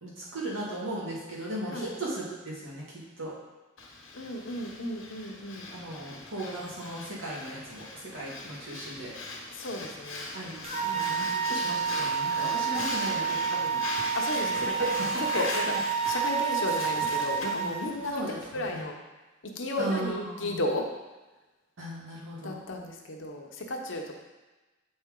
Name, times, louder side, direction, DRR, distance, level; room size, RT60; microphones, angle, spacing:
voice 1, 0.0-3.3 5.7-9.1 10.3-13.8 14.6-15.2 15.7-15.8 18.1-18.9 19.8-20.6 21.8-22.6, right 1 dB, 80° right, -5 dB, 2.0 m, -36 dB
Breathing, 3.8-18.8, left 2 dB, 80° left, 1.2 m, -40 dB
voice 2, 4.1-5.7 9.5-10.3 10.8-11.5 12.7-13.2 14.2-14.9 15.2-15.8 16.1-18.2 18.5-18.9 19.5-20.9 22.4-24.2, left 1 dB, 65° left, 2 dB, 0.9 m, -34 dB
sound 1, 10.6-17.8, right 7 dB, 30° right, 1.0 m, -29 dB
7.8 x 4.3 x 3.7 m, 1.2 s
head